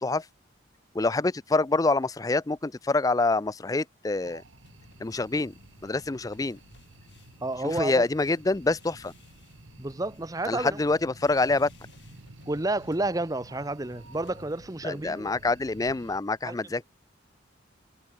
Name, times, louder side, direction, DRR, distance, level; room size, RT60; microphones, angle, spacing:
voice 1, 0.9-4.4 5.0-5.5 5.8-6.6 7.6-9.1 10.5-11.7 14.8-16.8, left 3 dB, 20° left, 0.4 m, -26 dB
sound 1, 4.2-16.2, right 2 dB, 75° right, 2.1 m, -52 dB
sound 2, 4.6-15.0, left 2 dB, 60° left, 2.2 m, -56 dB
voice 2, 7.4-8.0 9.8-10.8 12.5-15.4 16.4-16.6, right 2 dB, 20° right, 0.8 m, -30 dB
head